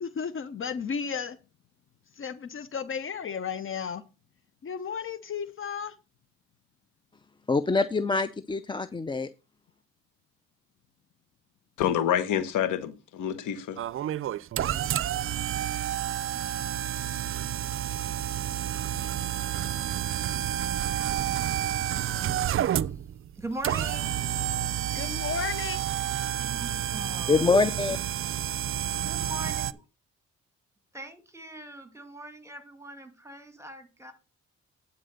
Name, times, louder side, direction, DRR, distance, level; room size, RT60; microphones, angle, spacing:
voice 1, 0.0-1.4 2.1-4.0 4.6-5.9 24.9-25.8, left 6 dB, 45° left, 0.8 m, -33 dB
voice 2, 7.5-9.3 27.3-28.0, left 4 dB, 15° left, 0.4 m, -24 dB
voice 3, 11.8-13.8, left 10 dB, 85° left, 1.2 m, -27 dB
sound 1, 13.8-29.7, right 11 dB, 45° right, 0.4 m, -30 dB
voice 4, 23.4-24.1 26.4-27.5 29.0-29.8 30.9-34.1, right 1 dB, 10° right, 1.9 m, -41 dB
9.8 x 4.1 x 6.5 m
cardioid pair, 90°, 30 cm